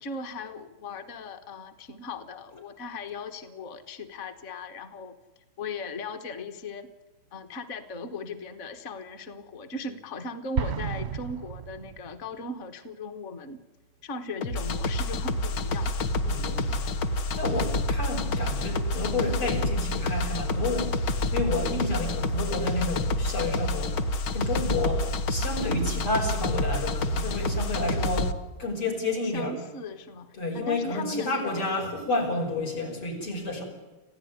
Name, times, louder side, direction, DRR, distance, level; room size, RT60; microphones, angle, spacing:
voice 1, 0.0-5.2 5.6-6.9 7.3-13.6 14.0-15.9 29.3-31.6, left 3 dB, 40° left, 8 dB, 1.5 m, -38 dB
Explosion, 10.5-12.4, right 7 dB, 45° right, 0.8 m, -32 dB
sound 1, 14.4-28.3, left 2 dB, 55° left, 1.8 m, -28 dB
voice 2, 16.2-21.0 21.3-24.0 24.3-29.6 30.4-33.6, left 2 dB, 80° left, 1 dB, 6.8 m, -30 dB
27.5 x 15.5 x 9.6 m, 1.2 s
omnidirectional pair, 2.4 m